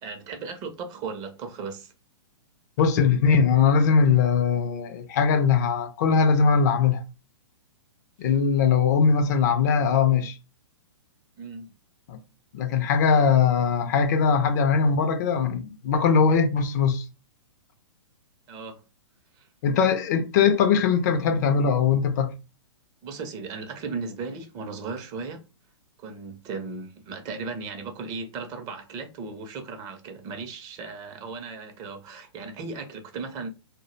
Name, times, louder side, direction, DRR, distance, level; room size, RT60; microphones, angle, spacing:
voice 1, 0.0-1.9 8.2-8.3 11.4-11.7 18.5-18.8 19.4-19.5 23.0-25.4 26.0-33.5, right 4 dB, 25° right, 0.5 m, -36 dB
voice 2, 2.8-7.0 8.2-10.4 12.1-12.2 12.5-17.0 19.6-22.3, left 6 dB, 40° left, 0.4 m, -21 dB
2.1 x 2.0 x 3.0 m
figure-of-eight pair, 115°, 15 cm